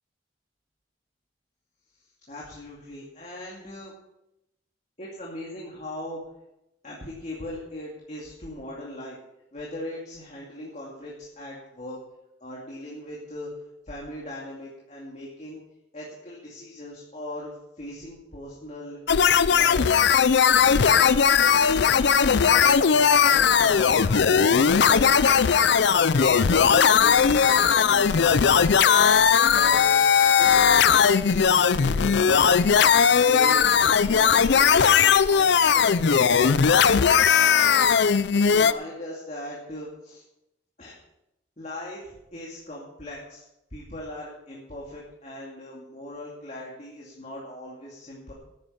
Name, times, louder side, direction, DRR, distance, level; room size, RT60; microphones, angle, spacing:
voice 1, 2.3-3.9 5.0-6.2 6.8-9.2 9.5-12.0 12.4-13.5 13.8-15.6 15.9-19.0 19.5-19.9 20.7-20.9 21.3-21.9 22.2-24.3 24.6-25.3 26.1-28.3 29.5-30.0 30.4-30.5 30.9-32.5 33.2-36.8 37.3-38.0 38.3-40.2 40.8-40.9 41.6-43.4 43.7-48.3, left 1 dB, 40° left, -3 dB, 2.5 m, -39 dB
sound 1, 19.1-38.7, left 7 dB, 65° left, 0.5 m, -18 dB
12.0 x 9.6 x 5.8 m, 0.87 s
head